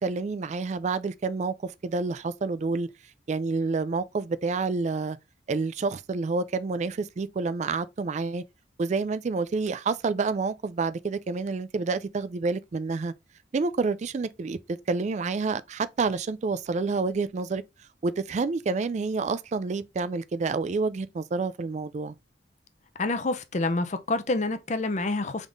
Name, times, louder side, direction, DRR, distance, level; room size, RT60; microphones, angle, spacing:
voice 1, 0.0-2.9 3.3-5.2 5.5-8.4 8.8-13.1 13.5-14.6 14.9-17.6 18.0-22.2, right 4 dB, 40° right, 0.3 m, -28 dB
voice 2, 23.0-25.5, left 2 dB, 40° left, 0.5 m, -27 dB
3.6 x 3.6 x 3.7 m
head